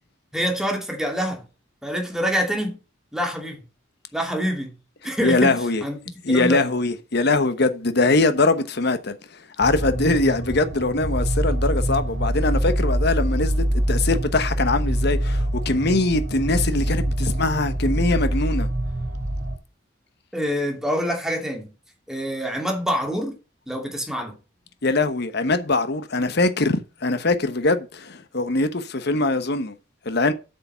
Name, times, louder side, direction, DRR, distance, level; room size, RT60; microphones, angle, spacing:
voice 1, 0.3-1.4 1.8-2.8 3.1-3.6 4.1-4.8 5.0-6.0 6.3-6.6 20.3-21.7 22.1-23.4 23.7-24.4, equal, 5° right, 2.6 m, -26 dB
voice 2, 5.2-5.8 6.2-9.2 9.6-18.7 24.8-29.8 30.0-30.3, left 2 dB, 55° left, 1.1 m, -22 dB
sound 1, 9.6-19.6, right 1 dB, 75° right, 2.7 m, -24 dB
8.3 x 6.8 x 5.6 m
head